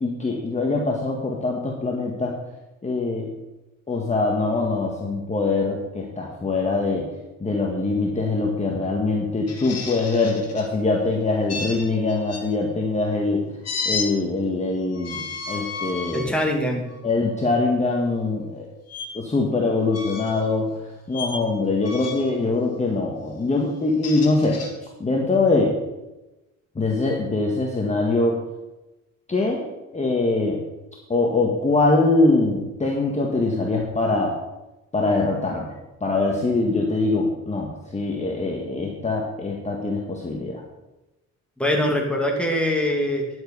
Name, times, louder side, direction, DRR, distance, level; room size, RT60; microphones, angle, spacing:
voice 1, 0.0-2.4 2.8-3.3 3.9-7.1 7.4-13.4 13.9-16.5 17.0-18.7 19.1-20.8 21.1-24.6 25.0-25.8 26.8-28.4 29.3-29.6 29.9-30.6 31.1-34.4 34.9-35.7 36.0-40.6, left 3 dB, 25° left, -1 dB, 1.7 m, -23 dB
sound 1, 9.5-10.7 11.5-12.4 13.6-14.1 14.9-16.3 16.9-17.1 18.9-19.1 19.9-20.5 21.1-21.4 21.8-22.3 23.8-24.7, left 4 dB, 55° left, 2.4 m, -32 dB
voice 2, 16.1-16.8 41.6-43.3, left 1 dB, 5° left, 0 dB, 2.7 m, -23 dB
10.5 x 7.9 x 5.5 m, 1.0 s
cardioid pair, 90°, 30 cm